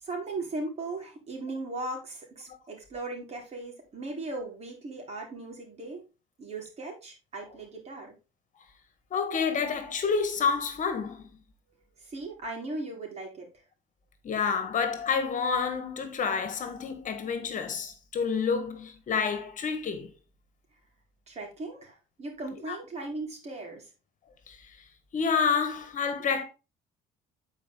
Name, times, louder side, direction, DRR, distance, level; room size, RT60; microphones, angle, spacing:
voice 1, 0.0-6.0 6.4-8.2 12.0-13.5 21.3-23.9, right 2 dB, 40° right, 4.0 m, -38 dB
voice 2, 9.1-11.3 14.2-20.1 22.7-22.8 24.5-24.7 25.1-26.4, left 6 dB, 50° left, 1.6 m, -29 dB
9.3 x 4.9 x 3.8 m
cardioid pair, 110°, 17 cm